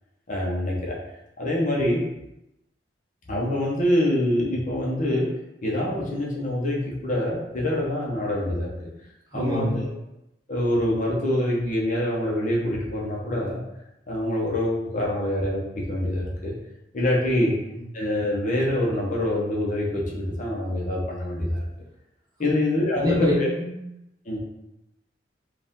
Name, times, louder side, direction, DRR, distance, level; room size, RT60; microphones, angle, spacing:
voice 1, 0.3-0.9 1.4-2.0 3.3-5.3 5.6-8.7 9.3-9.8 10.5-13.6 14.1-16.5 16.9-17.6 17.9-21.6 22.4-23.5 24.2-24.4, left 1 dB, 45° left, -4 dB, 1.0 m, -25 dB
voice 2, 9.3-9.9 17.7-17.8 22.4-22.5 22.9-23.7, left 1 dB, 20° right, -5 dB, 0.9 m, -25 dB
4.8 x 2.5 x 3.7 m, 0.89 s
head